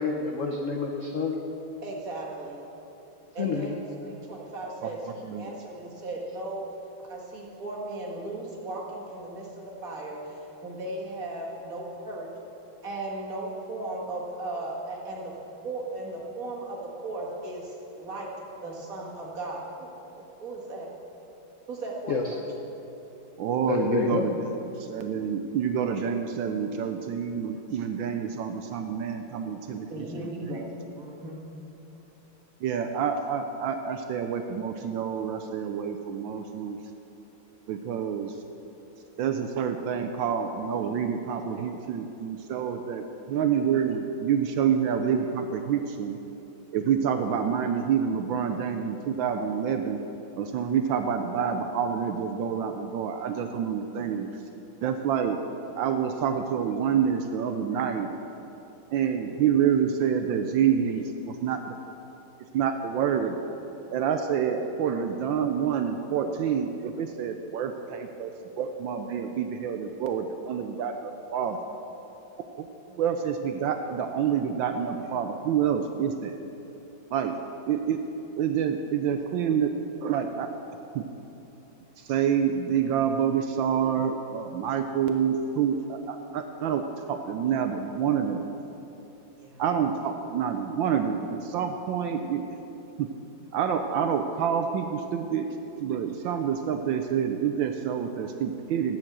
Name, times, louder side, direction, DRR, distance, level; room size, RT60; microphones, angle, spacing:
voice 1, 0.0-1.4 3.4-3.7 22.1-22.2 23.7-24.3, left 5 dB, 70° left, 2 dB, 0.7 m, -28 dB
voice 2, 1.8-2.6 3.3-6.7 7.0-12.3 12.8-15.3 15.6-18.3 18.6-19.9 20.2-20.9 21.7-22.5 29.9-30.7 31.0-31.4 89.4-89.6, right 2 dB, 45° right, -3 dB, 2.0 m, -36 dB
voice 3, 23.4-24.4 24.8-29.9 30.2-30.3 32.6-36.8 37.7-38.3 39.2-46.2 46.7-50.0 50.4-54.3 54.8-55.4 55.8-58.1 58.9-61.1 61.4-61.8 62.5-63.4 63.9-71.6 72.6-76.3 77.1-77.4 77.7-78.0 78.4-79.7 80.0-80.5 80.9-81.1 82.0-88.4 89.6-92.4 93.0-93.1 93.5-95.5 95.8-99.0, right 8 dB, 75° right, 6 dB, 1.2 m, -27 dB
10.0 x 7.3 x 7.7 m, 3.0 s
omnidirectional pair, 2.3 m